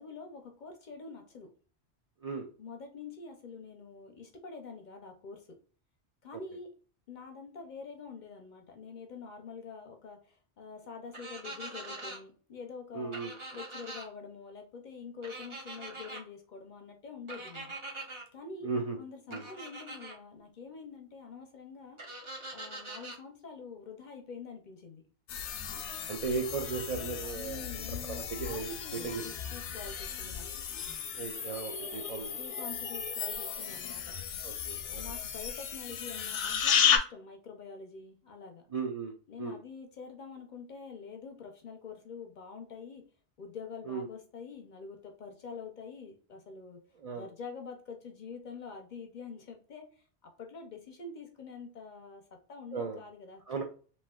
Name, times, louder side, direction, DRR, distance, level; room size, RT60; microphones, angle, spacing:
voice 1, 0.0-1.5 2.6-5.6 6.2-6.7 7.1-13.2 13.5-17.7 18.3-18.7 19.0-22.0 22.5-25.0 27.3-30.5 31.9-34.2 34.9-38.6 39.3-43.0 43.4-46.8 47.1-52.2 52.5-53.6, left 5 dB, 55° left, 3 dB, 0.6 m, -46 dB
sound 1, 11.1-12.2 13.1-14.0 15.2-16.2 17.3-18.2 19.3-20.1 22.0-23.2, right 2 dB, 30° right, 0.8 m, -43 dB
voice 2, 12.9-13.3 18.6-19.0 19.3-19.4 26.1-27.8 28.3-28.7 29.0-29.2 31.1-32.4 34.4-35.0 38.7-39.1 39.4-39.6 43.9-44.1 47.0-47.3 52.7-53.0 53.5-53.6, right 4 dB, 70° right, 3 dB, 0.3 m, -36 dB
sound 2, 25.3-37.0, left 7 dB, 90° left, 0.9 m, -34 dB
3.1 x 2.8 x 2.2 m, 0.40 s
omnidirectional pair, 1.1 m